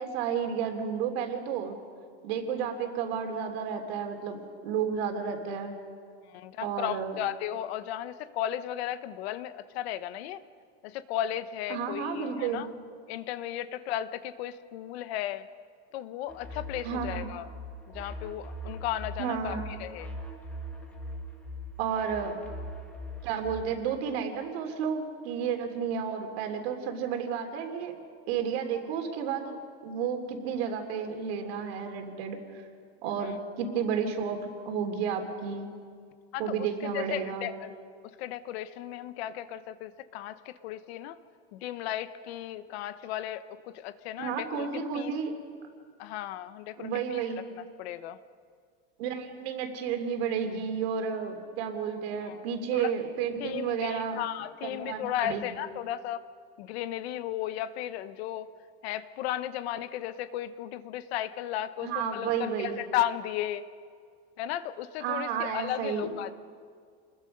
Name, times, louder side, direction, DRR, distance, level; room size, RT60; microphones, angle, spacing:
voice 1, 0.0-1.8 2.2-4.4 4.6-5.7 6.6-7.2 11.7-12.6 16.8-17.3 19.2-19.7 21.8-22.4 23.2-27.9 28.3-29.6 29.8-32.4 33.0-35.7 36.4-37.5 44.2-45.4 46.8-47.4 49.0-54.2 54.6-55.5 61.8-62.8 65.0-66.1, right 7 dB, 75° right, 4 dB, 3.3 m, -32 dB
voice 2, 6.3-10.4 10.8-12.7 13.1-15.5 15.9-17.5 17.9-20.1 33.2-33.4 36.3-37.7 38.2-41.2 41.5-45.1 46.0-47.2 47.5-48.2 52.2-52.4 52.7-52.9 53.4-56.2 56.6-58.5 58.8-63.6 64.4-66.3, left 12 dB, 75° left, 13 dB, 1.1 m, -35 dB
sound 1, 16.3-23.6, equal, 5° left, 1.9 m, -41 dB
29.0 x 21.0 x 5.4 m, 2.1 s
cardioid pair, 180°, 31 cm